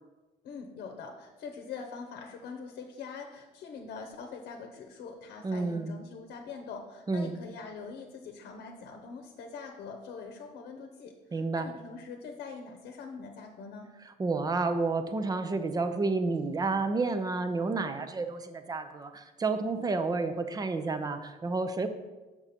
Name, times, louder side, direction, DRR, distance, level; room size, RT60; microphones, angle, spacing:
voice 1, 0.4-13.9, left 5 dB, 65° left, 4 dB, 0.9 m, -43 dB
voice 2, 5.4-6.0 7.1-7.3 11.3-11.7 14.2-21.9, right 3 dB, 20° right, 9 dB, 0.6 m, -30 dB
6.5 x 6.0 x 4.3 m, 1.2 s
cardioid pair, 110°, 17 cm